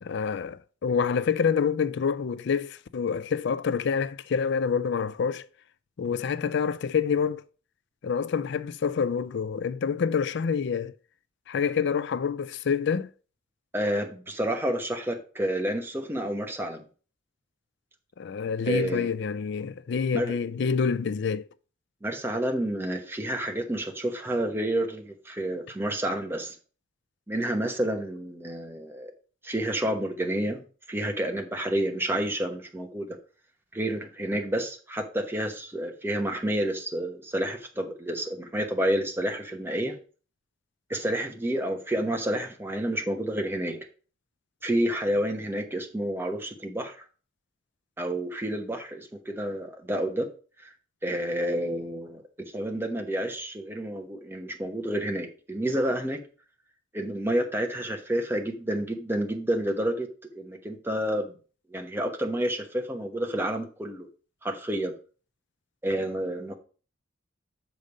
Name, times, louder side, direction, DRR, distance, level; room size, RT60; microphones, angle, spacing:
voice 1, 0.0-5.5 6.0-7.4 8.0-10.9 11.5-13.1 18.2-21.4, left 6 dB, 60° left, 0.4 m, -27 dB
voice 2, 13.7-16.8 18.7-19.1 20.1-20.3 22.0-26.5 27.3-29.1 29.4-33.2 33.7-40.0 40.9-43.9 44.6-47.0 48.0-50.3 51.0-56.2 56.9-60.1 60.3-61.3 61.7-64.1 64.4-64.9 65.8-66.6, right 1 dB, 10° right, 1.0 m, -29 dB
6.6 x 5.2 x 5.3 m
head